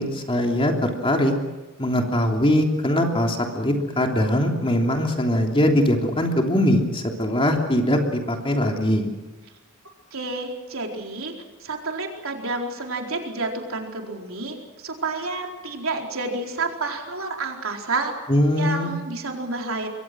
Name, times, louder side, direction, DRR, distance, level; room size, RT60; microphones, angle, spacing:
voice 1, 0.0-1.3 1.8-9.1 18.3-19.0, left 1 dB, 25° left, 2 dB, 3.1 m, -21 dB
voice 2, 10.1-11.3 11.6-18.1 18.6-19.9, right 3 dB, 70° right, 1 dB, 4.4 m, -29 dB
27.0 x 23.0 x 6.2 m, 1.2 s
head